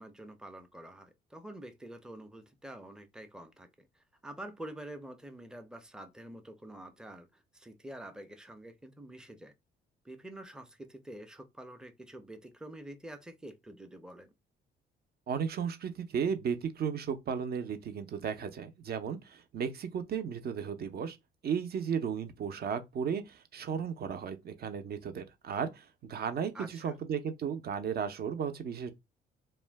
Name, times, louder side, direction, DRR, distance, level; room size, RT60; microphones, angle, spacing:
voice 1, 0.0-9.5 10.0-14.3 26.5-26.9, right 1 dB, 5° right, 0.5 m, -47 dB
voice 2, 15.3-21.2 21.4-28.9, right 7 dB, 55° right, 0.6 m, -35 dB
2.4 x 2.1 x 3.3 m
cardioid pair, 90°, 20 cm